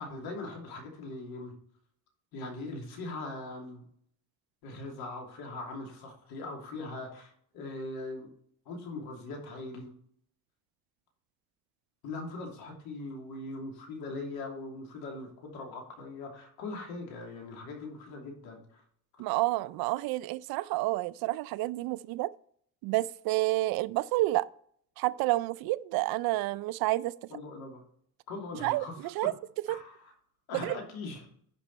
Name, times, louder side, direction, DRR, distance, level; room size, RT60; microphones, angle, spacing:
voice 1, 0.0-1.5 2.3-3.8 4.6-8.3 8.7-9.9 12.0-18.8 19.2-19.3 27.3-27.8 28.3-29.0 29.7-30.1 30.5-31.3, left 2 dB, 90° left, 2.8 m, -41 dB
voice 2, 19.2-22.3 22.8-24.5 25.0-27.1 28.6-28.8 29.2-29.3 29.7-29.8 30.5-30.8, right 18 dB, 75° right, 0.5 m, -29 dB
10.0 x 5.3 x 4.0 m
cardioid pair, 140°, 36 cm